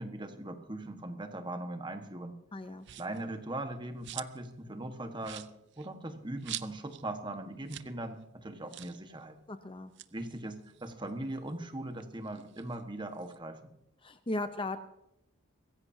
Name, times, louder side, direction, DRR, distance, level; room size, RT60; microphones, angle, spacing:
voice 1, 0.0-2.4 3.0-5.5 5.8-9.4 10.1-13.7, right 1 dB, 20° right, 6 dB, 1.4 m, -40 dB
voice 2, 2.5-2.9 9.5-9.9 14.0-14.8, left 2 dB, 25° left, 9 dB, 0.7 m, -36 dB
sound 1, 2.8-3.2 3.7-4.5 4.8-4.9 5.2-7.1 7.3-7.4 7.6-8.0 8.2-8.3 8.7-9.0 9.8-11.5 11.9-13.4, right 13 dB, 55° right, 0.6 m, -45 dB
24.0 x 16.0 x 2.8 m, 0.86 s
head